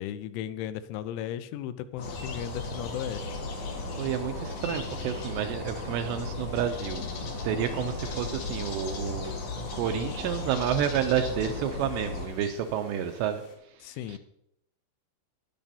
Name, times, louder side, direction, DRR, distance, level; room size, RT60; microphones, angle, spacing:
voice 1, 0.0-3.4 13.8-14.2, left 11 dB, 90° left, 12 dB, 3.1 m, -36 dB
sound 1, 2.0-13.5, left 5 dB, 70° left, 3.9 m, -47 dB
sound 2, 2.0-12.3, left 3 dB, 50° left, 2.0 m, -36 dB
voice 2, 4.0-7.0 7.4-9.3 9.8-13.4, right 9 dB, 80° right, 6 dB, 2.6 m, -30 dB
sound 3, 5.2-5.9 6.2-7.3 7.6-8.6 8.9-10.7 10.9-11.8, right 4 dB, 65° right, 1.5 m, -45 dB
12.0 x 10.5 x 2.8 m, 0.77 s
omnidirectional pair, 5.4 m